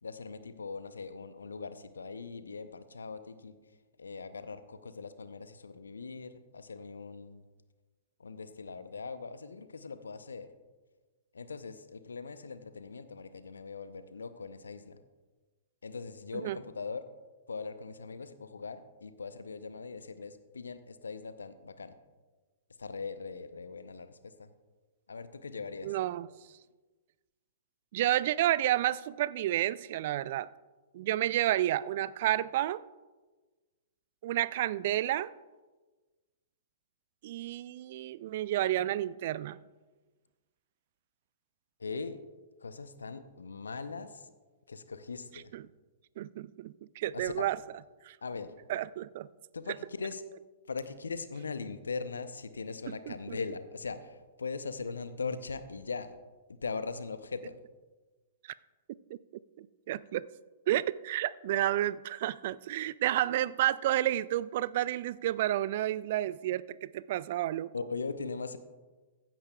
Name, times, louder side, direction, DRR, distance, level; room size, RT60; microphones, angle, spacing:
voice 1, 0.0-3.5 4.0-7.4 8.2-10.5 11.3-15.0 15.8-17.1 17.5-22.0 22.8-24.5 25.1-26.0 41.8-42.2 42.6-44.3 44.7-45.5 47.1-47.5 48.2-48.5 49.5-50.2 50.7-56.2 56.5-57.6 67.7-68.6, left 4 dB, 75° left, 12 dB, 0.7 m, -40 dB
voice 2, 25.8-26.3 27.9-30.5 30.9-32.8 34.2-35.3 37.2-39.6 45.5-45.6 46.2-47.6 48.0-48.2 48.7-49.3 52.9-53.4 59.6-60.3 60.7-67.7, right 13 dB, 50° right, 19 dB, 0.3 m, -30 dB
15.0 x 10.0 x 2.3 m, 1.3 s
figure-of-eight pair, 110°, 0 cm